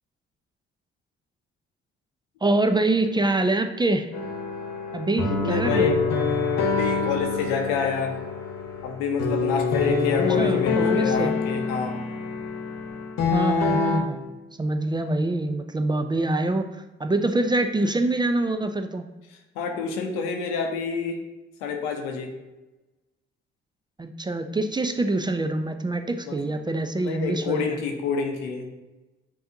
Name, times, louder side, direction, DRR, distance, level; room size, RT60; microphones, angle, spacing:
voice 1, 2.4-4.1 4.9-5.9 10.3-11.3 13.3-19.1 24.0-27.8, right 2 dB, 15° right, 7 dB, 0.3 m, -25 dB
sound 1, 4.1-14.0, left 5 dB, 60° left, 0.9 m, -26 dB
voice 2, 5.3-6.0 6.6-8.1 8.8-12.0 19.6-21.2 21.6-22.3 26.2-26.4 26.9-28.7, left 5 dB, 90° left, 3 dB, 0.6 m, -27 dB
5.5 x 2.7 x 2.7 m, 1.1 s
hypercardioid pair, 45°, 29 cm